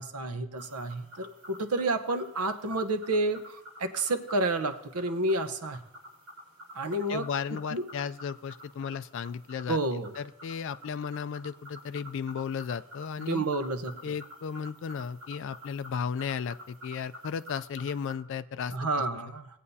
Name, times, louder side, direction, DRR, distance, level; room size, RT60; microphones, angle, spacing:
voice 1, 0.0-5.8 6.7-7.3 7.7-7.8 9.7-10.1 13.2-14.0 18.7-19.5, right 2 dB, 90° right, 8 dB, 0.9 m, -30 dB
sound 1, 0.6-18.1, equal, 70° right, 4.3 m, -50 dB
voice 2, 7.1-9.8 10.2-13.4 14.0-18.7, left 6 dB, 55° left, 12 dB, 0.3 m, -35 dB
19.0 x 8.4 x 2.7 m, 0.84 s
head